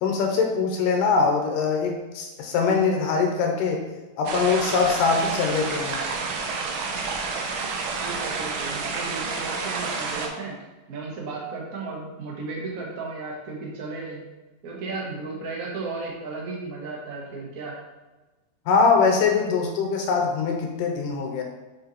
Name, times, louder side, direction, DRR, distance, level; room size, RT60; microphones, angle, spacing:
voice 1, 0.0-3.9 4.2-6.1 18.7-21.4, left 5 dB, 80° left, 2 dB, 2.5 m, -22 dB
sound 1, 4.3-10.3, right 4 dB, 85° right, 2.4 m, -29 dB
voice 2, 8.0-10.6 10.9-14.2 14.6-17.8, right 3 dB, 45° right, -3 dB, 1.1 m, -34 dB
7.1 x 4.3 x 4.2 m, 1.1 s
omnidirectional pair, 3.9 m